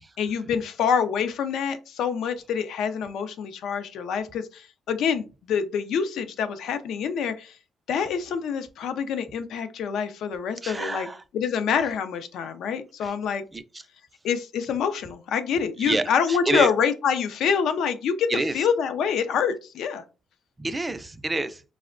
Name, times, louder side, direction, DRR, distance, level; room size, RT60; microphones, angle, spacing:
voice 1, 0.2-7.5 7.9-11.1 11.3-13.4 14.2-18.3 18.5-20.0, left 7 dB, 75° left, 0.4 m, -26 dB
voice 2, 10.6-11.2 13.0-13.1 13.5-13.8 15.8-16.7 18.3-18.7 20.6-21.6, right 2 dB, 20° right, 0.3 m, -28 dB
4.1 x 2.1 x 2.4 m
cardioid pair, 90°, 0 cm